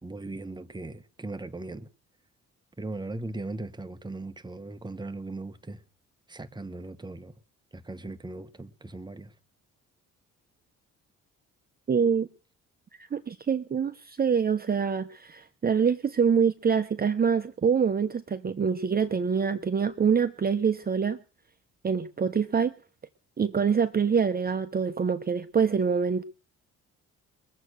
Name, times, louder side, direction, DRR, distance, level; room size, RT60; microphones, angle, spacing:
voice 1, 0.0-1.9 2.8-5.8 6.3-7.4 7.7-9.3, right 2 dB, 15° right, 1.2 m, -38 dB
voice 2, 11.9-12.3 13.0-21.2 21.8-22.7 23.4-26.2, right 6 dB, 30° right, 0.9 m, -25 dB
22.5 x 7.9 x 6.3 m
cardioid pair, 90°, 30 cm